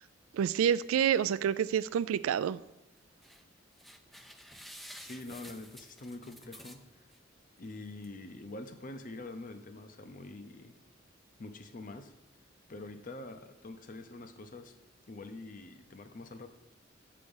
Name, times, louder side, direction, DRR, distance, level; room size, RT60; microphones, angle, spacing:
voice 1, 0.3-2.6, right 8 dB, 85° right, 16 dB, 0.3 m, -28 dB
sound 1, 3.0-3.4 3.8-7.2 7.6-7.7 8.0-8.1, equal, ahead, 0.3 m, -51 dB
voice 2, 5.0-7.1 7.6-10.8 11.4-12.1 12.7-14.8 15.1-16.5, left 2 dB, 40° left, 9 dB, 0.6 m, -45 dB
7.9 x 5.1 x 5.4 m, 0.95 s
head